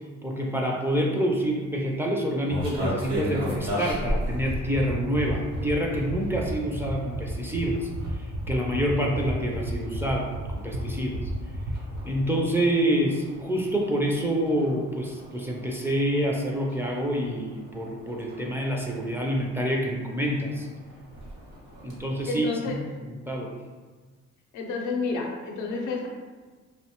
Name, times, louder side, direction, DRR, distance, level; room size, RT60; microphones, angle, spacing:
voice 1, 0.2-11.2 12.0-20.7 21.8-22.7 23.0-23.5, equal, 10° right, -2 dB, 0.3 m, -27 dB
sound 1, 2.5-22.3, equal, 85° right, 0.9 m, -38 dB
sound 2, 4.3-12.0, right 3 dB, 65° right, 0.5 m, -34 dB
voice 2, 22.3-22.8 24.5-26.1, left 3 dB, 90° left, 1 dB, 0.5 m, -30 dB
2.6 x 2.1 x 2.8 m, 1.4 s
cardioid pair, 90°, 30 cm